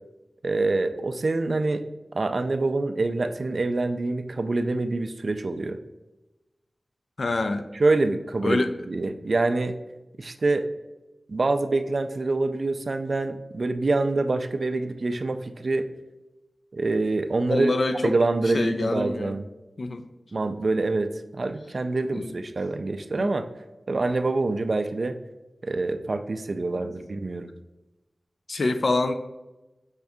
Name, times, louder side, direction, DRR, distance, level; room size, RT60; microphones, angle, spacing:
voice 1, 0.4-1.8 2.1-5.8 7.7-9.8 10.2-10.7 11.3-15.9 16.7-17.7 18.0-19.4 20.3-23.5 23.9-25.2 25.6-27.5, right 3 dB, 65° right, 8 dB, 0.3 m, -26 dB
voice 2, 7.2-7.6 8.4-8.7 17.5-18.1 18.5-19.3 19.8-20.1 22.1-22.3 23.2-23.3 26.8-26.9 28.5-29.1, left 2 dB, 75° left, 8 dB, 0.3 m, -26 dB
5.6 x 2.6 x 3.5 m, 1.1 s
cardioid pair, 40°, 0 cm